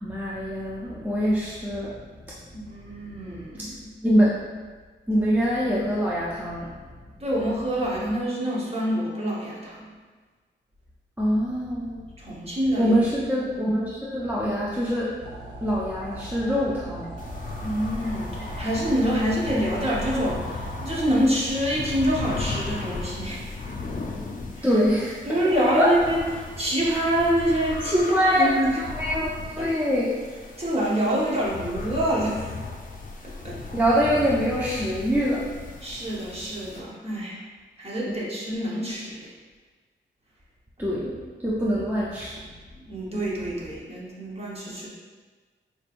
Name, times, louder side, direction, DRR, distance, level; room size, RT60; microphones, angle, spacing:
voice 1, 0.0-1.9 2.3-2.4 4.0-4.3 5.1-6.7 11.2-12.0 12.8-15.2 15.6-17.1 24.6-25.2 25.5-25.9 28.1-30.1 33.7-35.5 38.1-38.2 40.8-42.4, equal, 10° right, -6 dB, 0.5 m, -24 dB
voice 2, 2.5-3.9 7.2-9.9 12.2-12.9 17.6-23.6 24.6-24.8 25.3-28.7 29.6-29.7 30.6-32.6 33.4-33.6 35.8-37.4 37.8-39.3 42.8-44.9, equal, 30° right, -5 dB, 1.0 m, -26 dB
sound 1, 15.2-21.2, right 2 dB, 55° right, 0.9 m, -40 dB
sound 2, 17.2-36.8, left 3 dB, 40° left, 0.5 m, -36 dB
4.3 x 3.2 x 2.5 m, 1.4 s
wide cardioid pair, 95°, 20 cm